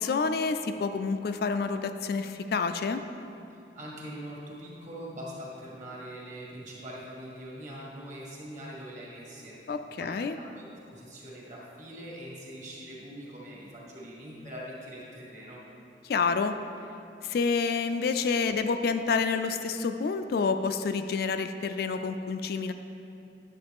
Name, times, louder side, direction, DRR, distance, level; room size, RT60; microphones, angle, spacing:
voice 1, 0.0-3.0 9.7-10.4 16.0-16.5 17.2-22.7, left 5 dB, 55° left, 8 dB, 0.3 m, -28 dB
voice 2, 3.5-9.6 10.0-10.6 10.9-15.6, equal, 40° right, -4 dB, 1.9 m, -43 dB
10.0 x 7.3 x 3.5 m, 2.7 s
head